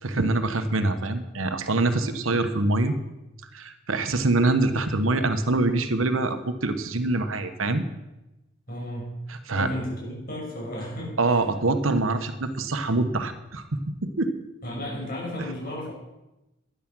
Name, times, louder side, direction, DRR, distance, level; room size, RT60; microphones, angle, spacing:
voice 1, 0.0-2.9 3.5-7.8 9.3-9.7 11.2-14.3, right 2 dB, 85° right, 9 dB, 1.1 m, -25 dB
voice 2, 8.7-9.1 9.5-11.1 14.6-15.9, left 1 dB, 45° left, -3 dB, 6.4 m, -33 dB
12.5 x 10.0 x 6.2 m, 0.98 s
head